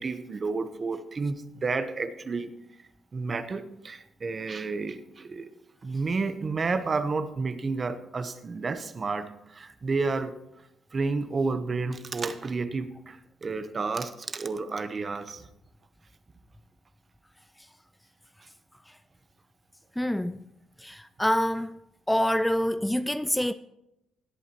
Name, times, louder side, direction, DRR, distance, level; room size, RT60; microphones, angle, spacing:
voice 1, 0.0-2.5 3.1-5.5 5.8-10.3 10.9-15.5, right 4 dB, 35° right, 0.9 m, -31 dB
voice 2, 20.0-20.4 20.8-21.8 22.1-23.5, left 1 dB, 5° left, 0.3 m, -26 dB
18.0 x 8.2 x 3.0 m
cardioid pair, 90°, 0 cm